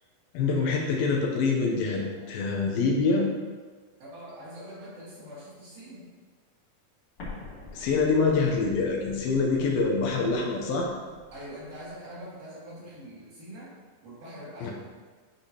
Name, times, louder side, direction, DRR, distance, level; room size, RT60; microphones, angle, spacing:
voice 1, 0.3-3.3 7.7-10.9 14.6-14.7, left 4 dB, 75° left, -1 dB, 2.5 m, -25 dB
voice 2, 1.9-2.3 4.0-6.1 11.3-13.7 14.0-14.7, equal, 60° right, -7 dB, 3.1 m, -44 dB
Explosion, 7.2-11.9, left 3 dB, 45° left, 2.0 m, -46 dB
10.5 x 5.0 x 2.9 m, 1.5 s
omnidirectional pair, 4.5 m